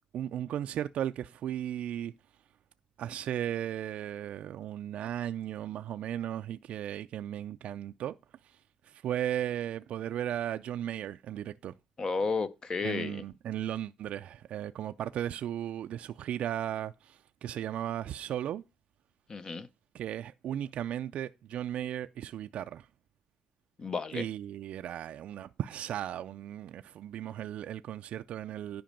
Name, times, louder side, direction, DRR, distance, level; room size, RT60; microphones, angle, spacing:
voice 1, 0.1-2.1 3.0-8.2 8.4-8.6 8.8-11.7 12.8-18.6 19.9-22.9 24.1-28.8, right 11 dB, 65° right, 0.4 m, -36 dB
voice 2, 12.0-13.2 19.3-19.7 23.8-24.3, left 4 dB, 35° left, 0.6 m, -32 dB
10.5 x 5.1 x 5.3 m
cardioid pair, 120°, 2 cm